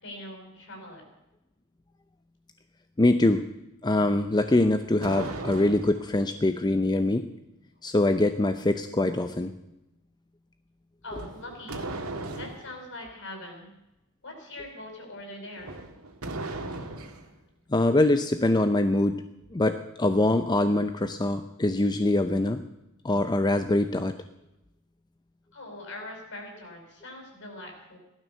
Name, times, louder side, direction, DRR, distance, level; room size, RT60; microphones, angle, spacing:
voice 1, 0.0-1.0 11.0-12.0 12.3-13.7 14.2-15.8 25.5-28.0, left 1 dB, 65° left, 1 dB, 5.3 m, -42 dB
voice 2, 3.0-3.5 3.8-7.3 7.8-9.5 17.7-19.2 19.5-22.6 23.0-24.2, left 2 dB, 20° left, 8 dB, 0.6 m, -24 dB
sound 1, 4.4-6.2 11.1-12.7 15.6-17.3, right 2 dB, 90° right, 1.9 m, -37 dB
16.0 x 12.5 x 6.7 m, 0.90 s
head